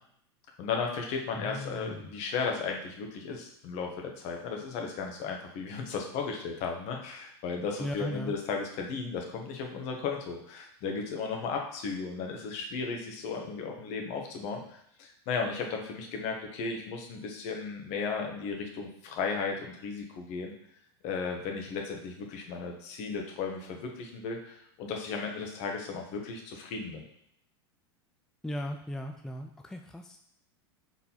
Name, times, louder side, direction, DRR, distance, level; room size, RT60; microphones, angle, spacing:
voice 1, 0.6-20.5 21.0-27.0, left 5 dB, 50° left, 2 dB, 1.4 m, -35 dB
voice 2, 1.3-2.0 7.8-8.3 28.4-30.2, equal, 5° left, 4 dB, 0.4 m, -37 dB
4.5 x 3.9 x 5.6 m, 0.70 s
hypercardioid pair, 95°, 14 cm